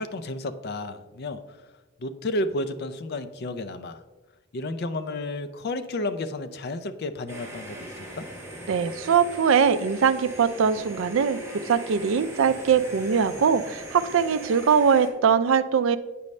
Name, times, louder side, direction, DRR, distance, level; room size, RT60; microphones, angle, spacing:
voice 1, 0.0-1.7 2.0-4.0 4.5-8.3, left 2 dB, 50° left, 9 dB, 0.4 m, -32 dB
sound 1, 7.3-15.1, right 1 dB, 10° right, 1.3 m, -40 dB
voice 2, 8.7-11.4 11.7-16.0, right 6 dB, 65° right, 13 dB, 0.4 m, -22 dB
8.3 x 5.2 x 3.2 m, 1.2 s
head